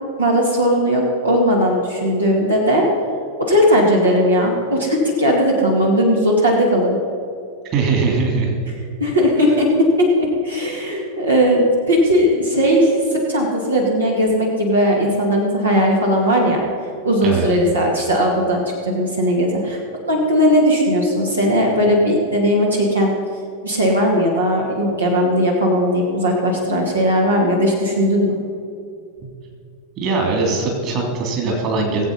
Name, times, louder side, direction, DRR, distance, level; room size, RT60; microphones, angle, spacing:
voice 1, 0.2-2.9 3.4-7.0 9.0-16.6 17.0-19.8 20.1-23.1 23.6-28.4, equal, 75° right, -2 dB, 2.2 m, -17 dB
voice 2, 7.7-8.6 9.4-9.5 17.2-17.5 30.0-32.1, right 4 dB, 35° right, 1 dB, 3.2 m, -20 dB
20.0 x 8.1 x 5.5 m, 2.5 s
figure-of-eight pair, 90°, 0 cm